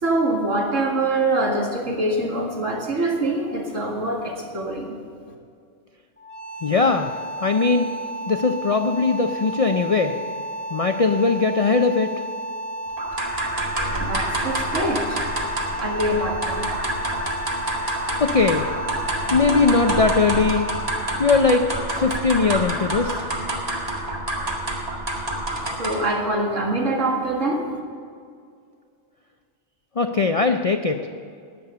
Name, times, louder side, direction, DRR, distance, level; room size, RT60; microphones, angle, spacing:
voice 1, 0.0-5.0 14.0-15.2 15.8-16.7 25.6-27.7, right 2 dB, 80° right, 0 dB, 2.2 m, -24 dB
sound 1, 6.2-23.1, right 1 dB, 10° left, 1.4 m, -33 dB
voice 2, 6.6-7.1 7.4-7.9 8.3-10.2 10.7-12.1 18.2-18.7 19.3-20.7 21.2-21.7 22.0-23.2 30.0-31.0, left 4 dB, 55° left, 6 dB, 0.4 m, -20 dB
sound 2, 13.0-26.2, right 1 dB, 30° right, 1.9 m, -28 dB
19.5 x 7.0 x 6.8 m, 2.2 s
omnidirectional pair, 1.3 m